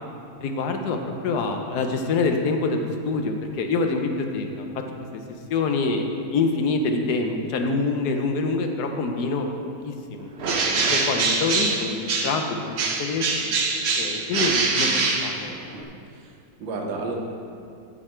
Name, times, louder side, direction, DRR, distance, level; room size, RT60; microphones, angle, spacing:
voice 1, 0.4-4.8 5.5-9.5 9.8-10.3 10.7-12.0 12.2-13.5 14.0-14.9 15.2-15.5, left 3 dB, 65° left, 4 dB, 1.2 m, -26 dB
Bird, 10.4-12.5 12.8-15.8, right 4 dB, 60° right, 0.7 m, -24 dB
voice 2, 16.1-17.1, right 3 dB, 90° right, 1 dB, 1.7 m, -32 dB
9.7 x 6.6 x 4.4 m, 2.4 s
omnidirectional pair, 2.0 m